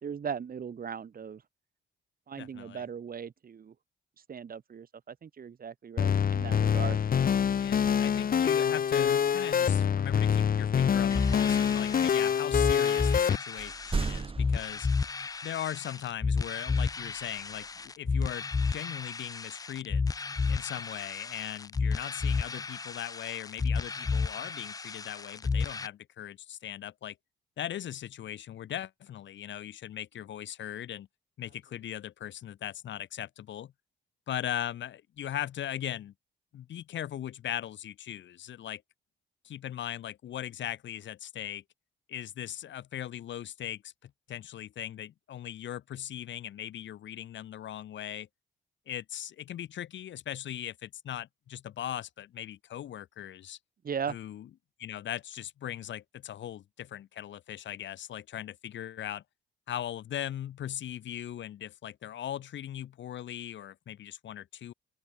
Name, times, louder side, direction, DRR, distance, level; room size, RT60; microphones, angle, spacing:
voice 1, 0.0-1.4 2.3-3.7 4.3-7.0 53.8-54.2, right 7 dB, 45° right, 4.3 m, -38 dB
voice 2, 2.4-2.9 7.6-14.9 15.4-20.0 20.5-27.2 27.6-31.1 31.4-33.7 34.3-36.1 36.5-38.8 39.4-41.6 42.1-48.3 48.9-53.6 54.1-54.5 54.8-59.2 59.7-64.7, left 11 dB, 70° left, 2.2 m, -39 dB
sound 1, 6.0-13.4, left 8 dB, 45° left, 1.4 m, -26 dB
sound 2, 11.1-25.9, left 4 dB, 20° left, 0.4 m, -32 dB
sound 3, 12.4-13.2 13.6-15.7 17.0-18.1 19.9-20.5 21.1-21.9, right 4 dB, 30° right, 2.9 m, -40 dB
open air
cardioid pair, 90°, 20 cm